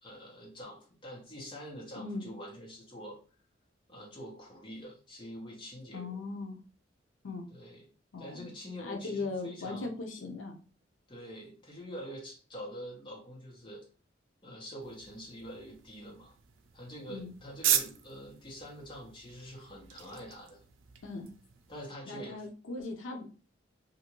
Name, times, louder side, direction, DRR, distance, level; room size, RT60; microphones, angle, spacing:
voice 1, 0.0-3.2 3.9-6.2 7.5-7.8 8.2-9.9 11.1-13.8 14.4-16.4 16.7-20.6 21.7-22.4, equal, 25° left, -3 dB, 0.9 m, -45 dB
voice 2, 1.9-2.3 5.9-6.6 7.2-7.5 8.1-8.5 8.8-10.6 17.1-17.3 21.0-21.3 22.1-23.3, left 3 dB, 85° left, 3 dB, 0.5 m, -38 dB
sound 1, 14.8-21.9, right 9 dB, 85° right, 0.4 m, -37 dB
2.6 x 2.4 x 2.9 m, 0.37 s
head